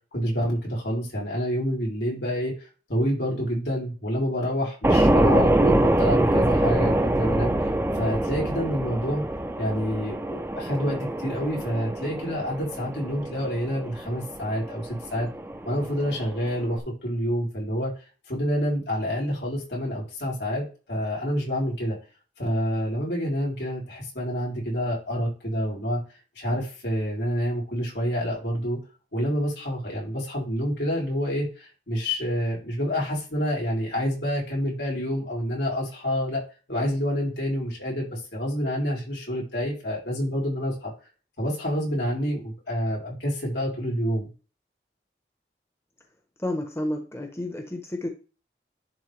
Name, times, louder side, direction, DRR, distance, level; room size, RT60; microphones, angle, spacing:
voice 1, 0.1-2.5 2.9-9.2 9.6-15.3 15.6-17.9 18.3-22.0 22.4-26.0 26.4-28.8 29.1-36.4 36.7-40.9 41.4-44.3, equal, 80° left, -3 dB, 3.9 m, -28 dB
sound 1, 4.8-16.8, right 1 dB, 15° right, 0.6 m, -25 dB
voice 2, 46.4-48.1, left 1 dB, 15° left, 3 dB, 1.0 m, -30 dB
10.5 x 3.8 x 3.3 m, 0.33 s
head